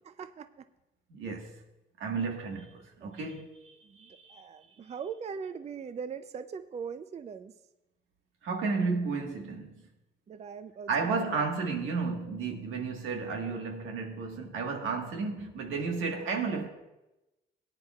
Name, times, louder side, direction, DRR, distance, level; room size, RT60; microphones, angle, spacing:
voice 1, 0.1-0.6 3.0-3.2 3.8-7.5 10.3-11.4, right 6 dB, 35° right, 0.4 m, -41 dB
voice 2, 1.1-1.6 2.0-4.4 8.4-9.8 10.9-16.7, right 4 dB, 85° right, 1.5 m, -33 dB
17.5 x 9.7 x 2.4 m
cardioid pair, 90°, 20 cm